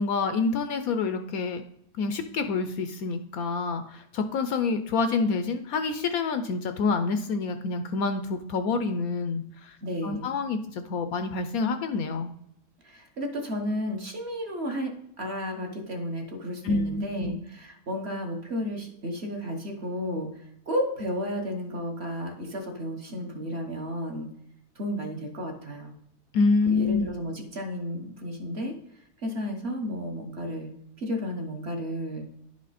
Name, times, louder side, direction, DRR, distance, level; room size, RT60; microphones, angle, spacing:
voice 1, 0.0-1.6 2.0-9.8 10.0-12.3 16.6-17.4 26.3-27.1, left 4 dB, 70° left, 8 dB, 0.9 m, -27 dB
voice 2, 9.8-10.3 12.8-24.3 24.7-25.9 26.7-28.7 29.2-30.7 31.0-32.2, equal, 45° right, 2 dB, 1.2 m, -33 dB
10.5 x 5.0 x 4.0 m, 0.74 s
omnidirectional pair, 1.8 m